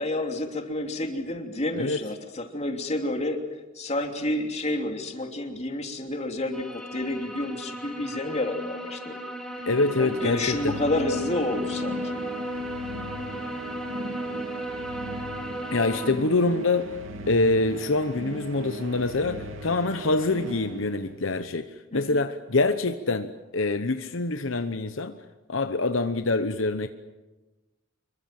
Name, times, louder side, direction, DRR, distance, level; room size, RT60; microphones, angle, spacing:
voice 1, 0.0-3.4 3.7-9.2 10.0-12.2 21.9-22.2, left 1 dB, 35° left, 3.1 m, -29 dB
sound 1, 6.5-16.1, equal, 5° left, 2.7 m, -35 dB
sound 2, 9.6-21.4, right 2 dB, 75° right, 3.0 m, -39 dB
voice 2, 9.7-10.8 15.7-16.9 17.3-25.2 25.5-26.9, left 3 dB, 70° left, 1.0 m, -25 dB
26.5 x 23.5 x 7.8 m
head